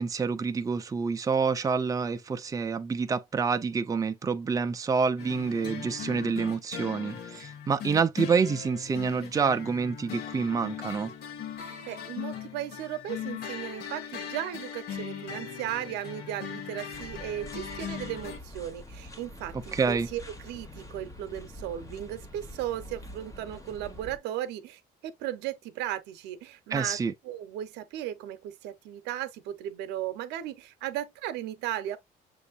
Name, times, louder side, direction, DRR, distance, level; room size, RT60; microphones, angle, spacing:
voice 1, 0.0-11.1 19.7-20.1 26.7-27.1, right 5 dB, 20° right, 0.5 m, -27 dB
sound 1, 5.2-18.4, left 8 dB, 70° left, 1.3 m, -39 dB
voice 2, 11.6-27.0 27.2-32.0, right 12 dB, 90° right, 0.8 m, -36 dB
sound 2, 16.9-24.2, left 1 dB, 20° left, 1.1 m, -46 dB
6.9 x 2.6 x 2.4 m
cardioid pair, 110°, 17 cm